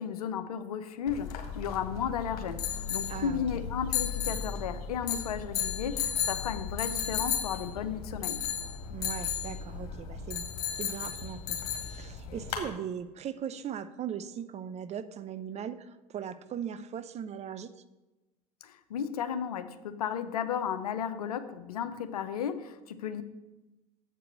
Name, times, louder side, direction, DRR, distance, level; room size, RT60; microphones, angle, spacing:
voice 1, 0.0-8.4 18.6-23.2, left 8 dB, 85° left, 11 dB, 0.6 m, -34 dB
sound 1, 1.1-12.7, left 8 dB, 70° left, 1.5 m, -34 dB
voice 2, 3.1-3.4 8.9-10.4 10.8-17.7, right 8 dB, 35° right, 13 dB, 0.6 m, -39 dB
7.5 x 4.8 x 6.6 m, 1.1 s
hypercardioid pair, 75°, 19 cm